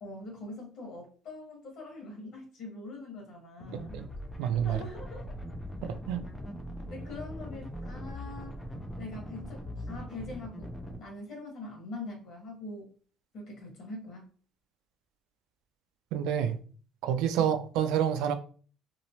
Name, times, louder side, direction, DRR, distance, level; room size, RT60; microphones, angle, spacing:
voice 1, 0.0-4.0 4.6-5.3 6.9-8.6 9.0-10.7 11.0-12.9 13.3-14.3 17.4-17.5, left 2 dB, 60° left, 1.2 m, -43 dB
sound 1, 3.6-11.0, equal, 10° left, 0.4 m, -41 dB
voice 2, 3.7-4.1 4.4-4.8 5.8-6.2 16.1-16.6 17.0-18.3, right 9 dB, 90° right, 0.4 m, -28 dB
2.9 x 2.0 x 2.8 m
cardioid pair, 140°, 0 cm